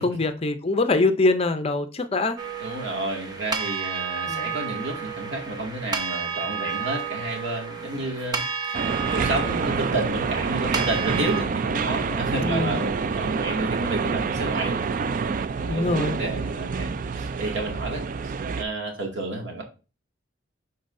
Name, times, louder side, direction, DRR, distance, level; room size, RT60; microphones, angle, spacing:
voice 1, 0.0-2.4 4.3-4.5 12.4-12.8 15.7-16.2, left 2 dB, 30° left, 0.5 m, -23 dB
sound 1, 2.4-11.4, right 5 dB, 20° right, 0.9 m, -31 dB
voice 2, 2.6-14.8 15.6-19.6, right 2 dB, 65° right, 2.1 m, -31 dB
sound 2, 8.7-18.6, right 5 dB, 45° right, 0.3 m, -27 dB
10.5 x 4.0 x 2.6 m
head